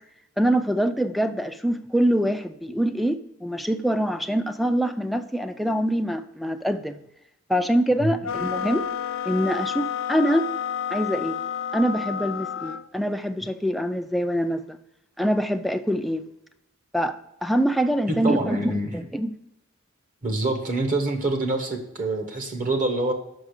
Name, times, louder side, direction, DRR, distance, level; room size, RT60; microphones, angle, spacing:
voice 1, 0.4-7.0 7.5-8.9 9.3-10.5 10.9-11.4 11.7-14.8 15.2-16.2 16.9-19.3, equal, ahead, 7 dB, 0.3 m, -24 dB
sound 1, 8.2-12.9, left 8 dB, 70° left, 0.4 m, -30 dB
voice 2, 18.1-19.0 20.2-23.1, right 2 dB, 40° right, 3 dB, 1.1 m, -26 dB
6.2 x 5.7 x 6.5 m, 0.84 s
head